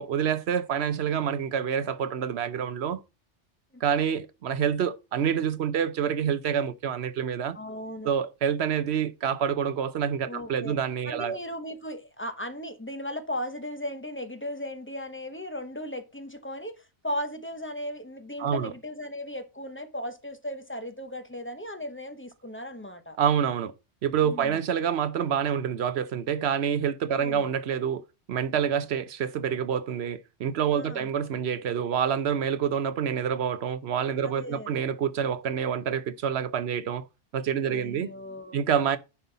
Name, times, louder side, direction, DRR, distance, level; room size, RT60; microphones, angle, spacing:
voice 1, 0.0-3.0 3.8-7.6 8.0-11.4 18.4-18.7 23.2-23.7 24.0-28.0 28.3-37.1 37.3-38.1 38.5-39.0, right 8 dB, 65° right, 0.9 m, -27 dB
voice 2, 7.5-8.1 10.3-10.8 11.0-23.2 24.2-24.6 27.1-27.5 30.7-31.1 34.2-34.7 37.7-38.6, left 1 dB, 10° left, 0.7 m, -37 dB
10.0 x 5.4 x 4.0 m
omnidirectional pair, 1.2 m